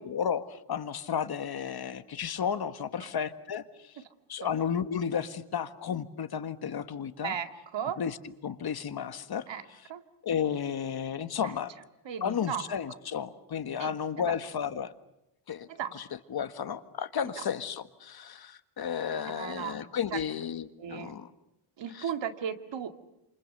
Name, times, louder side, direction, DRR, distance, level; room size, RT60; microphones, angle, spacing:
voice 1, 0.0-3.9 4.3-7.3 8.0-8.2 8.4-9.4 10.2-11.7 12.2-14.9 15.5-16.0 16.3-21.3 21.9-22.1, left 8 dB, 50° left, 11 dB, 1.6 m, -33 dB
voice 2, 7.2-8.0 9.5-9.6 9.9-10.0 11.4-11.5 12.1-12.7 13.8-14.3 15.7-16.0 17.4-17.5 19.3-19.8 20.1-20.2 20.8-21.2 21.8-22.9, right 8 dB, 60° right, 8 dB, 2.2 m, -36 dB
28.5 x 27.5 x 6.7 m, 0.87 s
cardioid pair, 125°, 49 cm